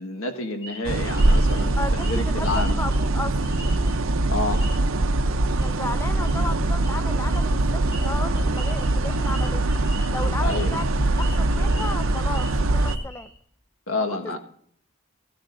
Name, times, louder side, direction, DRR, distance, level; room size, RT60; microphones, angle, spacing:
voice 1, 0.0-1.7 2.1-2.7 4.3-4.6 10.4-10.8 13.9-14.4, left 2 dB, 85° left, 6 dB, 1.6 m, -28 dB
sound 1, 0.6-4.1 4.4-5.0 5.5-5.7 6.0-6.3 6.8-13.3, right 2 dB, 60° left, 6.9 m, -43 dB
sound 2, 0.8-13.0, right 2 dB, 75° right, 0.8 m, -22 dB
voice 2, 1.8-3.4 5.6-9.7 10.1-10.9 11.2-13.3 14.1-14.4, left 2 dB, 10° left, 11 dB, 0.4 m, -34 dB
16.0 x 13.5 x 2.7 m, 0.62 s
head